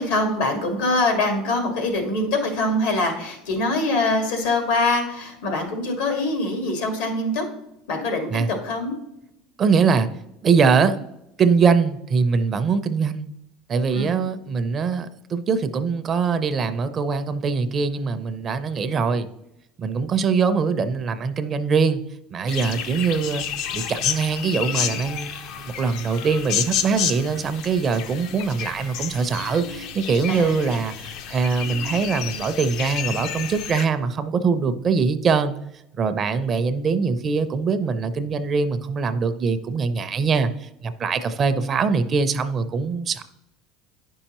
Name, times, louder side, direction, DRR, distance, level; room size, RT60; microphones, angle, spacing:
voice 1, 0.0-7.5 7.9-8.3 8.6-8.9 13.9-14.1 30.3-30.6, left 2 dB, 80° left, 4 dB, 1.9 m, -23 dB
voice 2, 9.6-10.1 10.4-11.0 11.4-13.3 13.7-19.3 19.8-22.0 22.3-23.4 23.7-25.3 25.6-35.5 35.9-43.2, right 5 dB, 30° right, 11 dB, 0.5 m, -22 dB
sound 1, 22.5-33.9, left 8 dB, 60° left, 0.6 m, -30 dB
9.7 x 5.4 x 3.0 m, 0.86 s
supercardioid pair, 125°, 0 cm